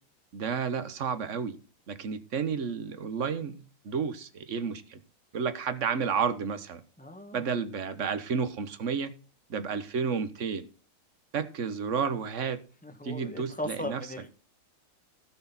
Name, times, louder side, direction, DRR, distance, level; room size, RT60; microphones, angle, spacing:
voice 1, 0.3-1.6 1.9-5.0 5.3-6.8 7.3-9.1 9.5-10.7 11.3-12.6 13.0-14.1, right 6 dB, 40° right, 11 dB, 1.3 m, -31 dB
voice 2, 7.0-7.5 12.8-14.3, left 1 dB, 5° left, 5 dB, 1.5 m, -38 dB
16.0 x 6.6 x 4.1 m, 0.37 s
omnidirectional pair, 2.3 m